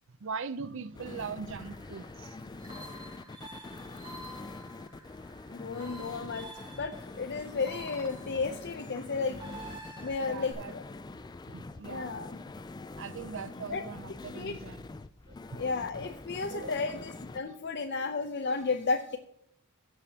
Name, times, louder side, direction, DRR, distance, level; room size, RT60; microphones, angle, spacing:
voice 1, 0.1-2.4 6.0-6.1 10.2-10.7 11.5-12.2 13.0-14.8 15.3-15.6 16.5-16.8 17.5-17.6, right 5 dB, 60° right, 0.6 m, -41 dB
sound 1, 0.9-17.4, left 3 dB, 20° left, 0.3 m, -45 dB
sound 2, 1.5-10.5, right 1 dB, 20° right, 2.6 m, -49 dB
voice 2, 5.5-6.5 6.8-9.4 10.0-10.8 11.9-12.4 13.7-13.8 14.4-14.5 15.5-19.2, left 4 dB, 50° left, 0.6 m, -33 dB
16.5 x 7.2 x 2.9 m
head